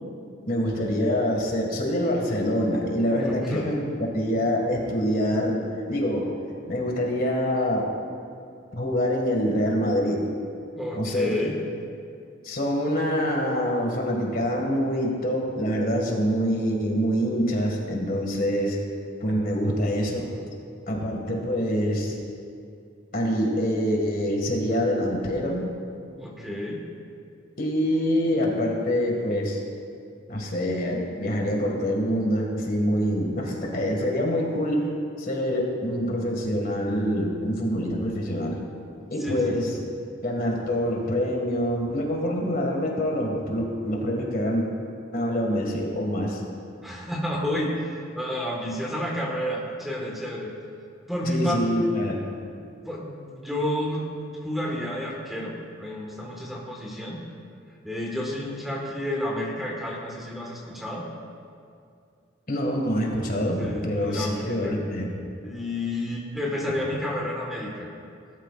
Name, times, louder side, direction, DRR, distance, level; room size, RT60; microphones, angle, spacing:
voice 1, 0.5-5.6 5.9-6.3 6.7-7.9 8.7-10.3 11.0-11.3 12.4-18.8 19.2-20.3 20.9-22.2 23.1-25.7 27.6-29.6 30.3-34.8 35.2-38.6 39.1-39.7 40.2-44.7 45.1-46.4 51.2-52.4 62.5-65.1, equal, 45° left, 0 dB, 2.0 m, -25 dB
voice 2, 3.2-3.7 10.8-11.6 26.2-26.8 39.2-39.7 46.8-50.5 51.1-51.9 52.8-54.1 54.4-57.2 57.8-61.1 63.6-64.8 65.4-67.9, left 1 dB, ahead, -3 dB, 1.6 m, -30 dB
19.0 x 12.5 x 2.5 m, 2.4 s
head